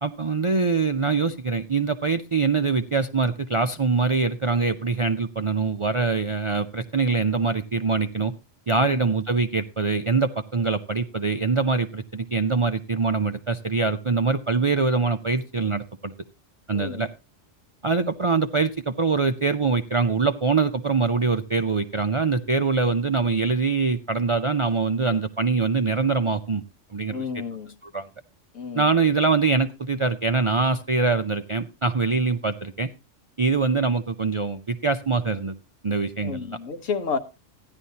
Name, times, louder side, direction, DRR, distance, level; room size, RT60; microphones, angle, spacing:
voice 1, 0.0-8.3 8.7-16.1 16.7-17.1 17.8-26.6 26.9-27.3 27.8-28.1 28.7-32.9 33.4-35.5 35.8-36.6, right 4 dB, 50° right, 0.3 m, -23 dB
voice 2, 27.1-27.7 28.5-28.9 36.2-37.2, left 5 dB, 80° left, 1.5 m, -31 dB
14.5 x 10.5 x 2.8 m
omnidirectional pair, 1.3 m